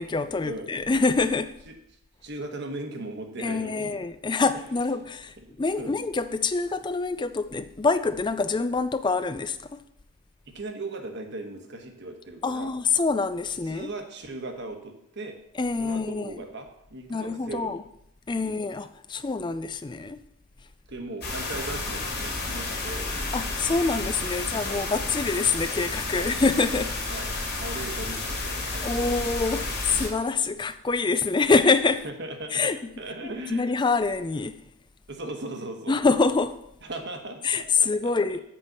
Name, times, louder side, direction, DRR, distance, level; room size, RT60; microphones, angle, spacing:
voice 1, 0.0-1.5 3.4-9.8 12.4-13.9 15.6-16.3 17.1-17.8 18.3-20.2 23.3-26.9 28.8-32.0 32.5-32.8 33.5-34.6 35.9-36.6 37.4-38.4, left 4 dB, 20° left, 0.3 m, -25 dB
voice 2, 2.2-3.9 5.8-5.9 10.5-12.7 13.7-15.4 15.8-17.8 18.4-18.6 20.9-23.1 24.7-24.8 26.1-26.3 27.1-29.1 32.0-32.7 33.0-33.7 35.1-36.0 36.8-38.1, right 2 dB, 50° right, 1.2 m, -38 dB
sound 1, 21.2-30.1, left 2 dB, 45° left, 2.1 m, -31 dB
7.5 x 5.2 x 6.7 m
head